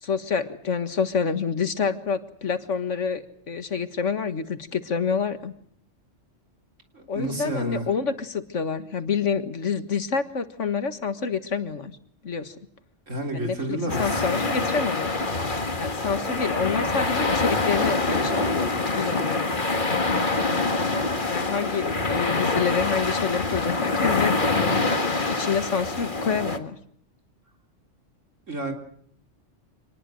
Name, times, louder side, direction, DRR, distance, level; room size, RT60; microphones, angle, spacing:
voice 1, 0.0-5.5 7.1-11.9 12.2-12.6 13.3-15.1 15.8-19.4 21.3-24.8 25.3-26.8, left 6 dB, 75° left, 10 dB, 2.0 m, -28 dB
voice 2, 6.9-7.9 13.1-14.7 28.5-28.7, right 1 dB, 80° right, 4 dB, 4.0 m, -31 dB
sound 1, 13.9-26.6, left 3 dB, 40° left, 2.1 m, -25 dB
26.0 x 20.0 x 7.8 m, 0.63 s
omnidirectional pair, 1.3 m